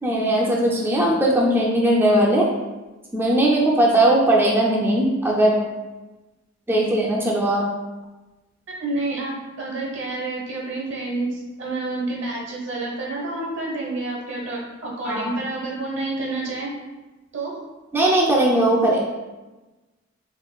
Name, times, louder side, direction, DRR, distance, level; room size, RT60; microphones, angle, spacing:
voice 1, 0.0-2.5 3.1-5.6 6.7-7.7 15.0-15.3 17.9-19.0, right 1 dB, 10° right, -3 dB, 0.4 m, -19 dB
voice 2, 8.8-16.7 17.3-17.5, right 2 dB, 65° right, -2 dB, 1.0 m, -29 dB
3.7 x 3.2 x 2.3 m, 1.1 s
head